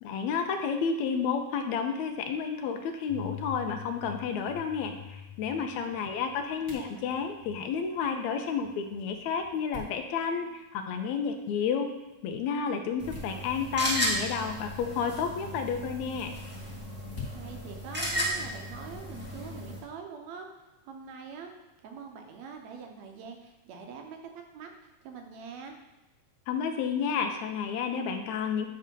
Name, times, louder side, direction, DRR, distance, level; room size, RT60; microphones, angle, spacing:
voice 1, 0.0-11.9 12.2-16.4 26.5-28.7, left 6 dB, 80° left, 5 dB, 1.9 m, -31 dB
sound 1, 3.1-8.1 8.4-9.5, left 11 dB, 25° left, 1.0 m, -46 dB
sound 2, 4.1-19.0, left 5 dB, 40° left, 2.0 m, -52 dB
voice 2, 6.0-7.0 17.3-20.5 20.8-21.5 21.8-25.7, right 6 dB, 75° right, 3 dB, 2.0 m, -45 dB
sound 3, 13.0-19.8, equal, 10° right, 0.5 m, -34 dB
9.1 x 3.3 x 5.2 m, 1.1 s
omnidirectional pair, 3.3 m